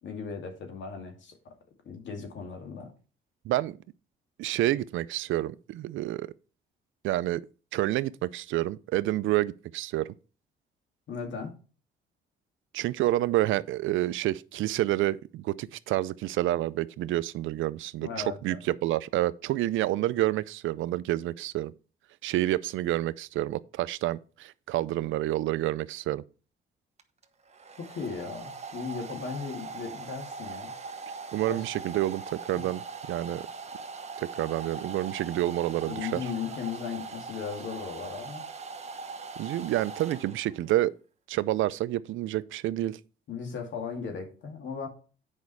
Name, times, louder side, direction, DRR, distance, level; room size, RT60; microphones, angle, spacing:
voice 1, 0.0-1.5 1.8-2.9 11.1-11.5 18.0-18.6 27.8-30.7 31.5-31.6 32.5-32.6 35.9-38.4 43.3-44.9, left 6 dB, 70° left, 2.4 m, -37 dB
voice 2, 3.4-3.8 4.4-6.3 7.0-7.4 7.7-10.1 12.7-21.7 22.2-26.2 31.3-33.4 34.2-36.3 39.4-40.9 41.3-43.0, right 15 dB, 80° right, 0.5 m, -28 dB
Domestic sounds home sounds, 27.0-40.7, right 4 dB, 35° right, 1.2 m, -41 dB
8.4 x 5.3 x 4.6 m
cardioid pair, 90°, 20 cm